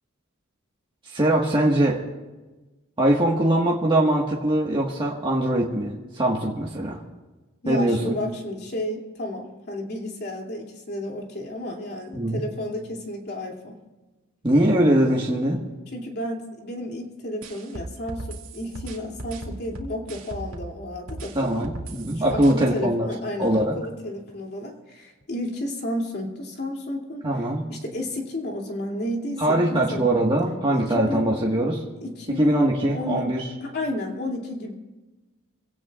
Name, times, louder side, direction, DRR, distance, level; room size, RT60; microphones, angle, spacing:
voice 1, 1.0-2.0 3.0-7.0 7.7-8.1 12.1-12.4 14.4-15.6 21.3-23.1 23.4-23.7 27.2-27.6 29.4-31.8 32.4-33.5, right 1 dB, 25° right, -4 dB, 1.6 m, -22 dB
voice 2, 7.6-13.8 15.9-21.7 22.2-27.3 27.7-30.1 30.7-31.3 32.0-33.3 33.6-34.7, left 1 dB, 50° left, 0 dB, 2.8 m, -32 dB
sound 1, 17.4-20.8 21.1-22.5, right 2 dB, 75° right, 2.2 m, -37 dB
27.0 x 17.0 x 2.5 m, 1.2 s
head